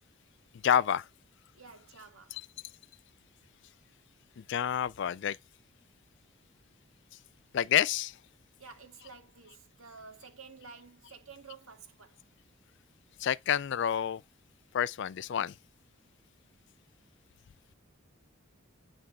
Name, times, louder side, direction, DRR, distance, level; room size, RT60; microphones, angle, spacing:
voice 1, 0.6-1.0 4.5-5.4 7.5-8.1 13.2-14.2 14.7-15.5, left 9 dB, 55° left, 0.3 m, -28 dB
voice 2, 1.5-2.4 8.6-12.3, right 5 dB, 75° right, 1.8 m, -51 dB
9.9 x 3.5 x 4.2 m
head